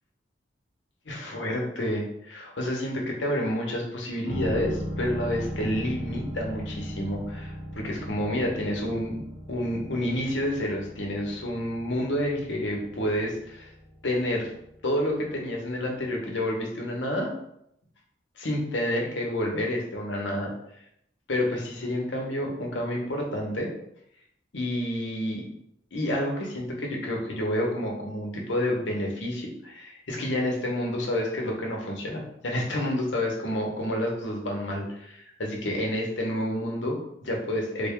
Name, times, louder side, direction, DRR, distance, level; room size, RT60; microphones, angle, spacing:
voice 1, 1.1-9.2 9.5-13.7 14.0-14.5 14.8-17.3 18.4-20.5 21.3-23.7 24.5-25.4 25.9-37.9, left 1 dB, 80° left, 0 dB, 0.9 m, -29 dB
sound 1, 4.3-15.8 16.1-16.2, equal, 45° right, 1.4 m, -38 dB
3.6 x 2.3 x 3.6 m, 0.75 s
head